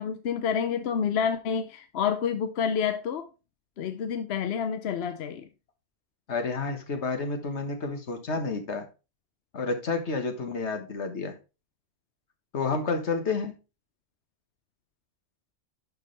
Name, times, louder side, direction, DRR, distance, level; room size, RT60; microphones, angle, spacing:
voice 1, 0.0-3.3 3.8-5.5, left 7 dB, 70° left, 0.9 m, -28 dB
voice 2, 6.3-8.9 9.5-11.3 12.5-13.5, left 4 dB, 85° left, 1.7 m, -30 dB
11.5 x 4.8 x 3.2 m
omnidirectional pair, 1.1 m